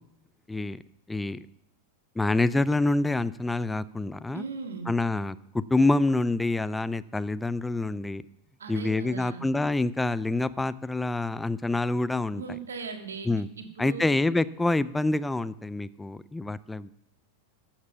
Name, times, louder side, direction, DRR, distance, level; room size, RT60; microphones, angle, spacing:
voice 1, 0.5-0.8 1.1-1.4 2.2-4.4 4.9-8.2 8.7-12.4 13.3-13.5 13.8-16.9, left 2 dB, 5° left, 16 dB, 0.4 m, -26 dB
voice 2, 4.3-4.9 8.6-9.4 12.3-13.3 13.6-14.2, right 5 dB, 70° right, 6 dB, 1.8 m, -38 dB
14.5 x 7.4 x 5.8 m, 0.80 s
figure-of-eight pair, 90°, 0 cm